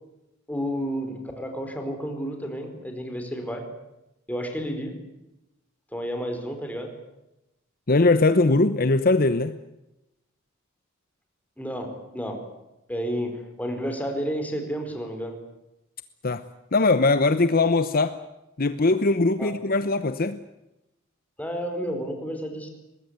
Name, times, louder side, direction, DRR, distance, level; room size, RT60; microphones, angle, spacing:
voice 1, 0.5-3.7 4.3-5.0 5.9-6.9 11.6-12.4 12.9-15.3 19.4-19.5 21.4-22.7, equal, 10° left, 4 dB, 4.6 m, -31 dB
voice 2, 7.9-9.6 16.2-16.4 16.7-18.2 18.6-20.4, left 3 dB, 45° left, 11 dB, 0.9 m, -21 dB
23.0 x 20.5 x 9.6 m, 0.92 s
head